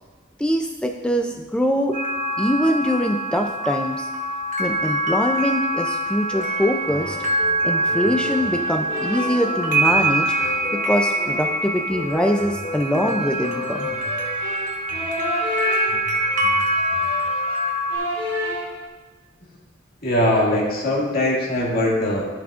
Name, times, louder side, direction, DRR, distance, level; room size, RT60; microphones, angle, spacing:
voice 1, 0.4-2.0 2.4-4.1 4.6-7.2 7.6-10.4 10.7-13.9, equal, 5° left, 3 dB, 0.4 m, -23 dB
sound 1, 1.9-18.0, right 1 dB, 40° right, 1.1 m, -24 dB
sound 2, 6.3-18.9, left 2 dB, 30° left, 2.2 m, -32 dB
voice 2, 20.0-22.2, left 1 dB, 50° left, -4 dB, 2.1 m, -21 dB
14.0 x 6.0 x 2.4 m, 1.3 s
head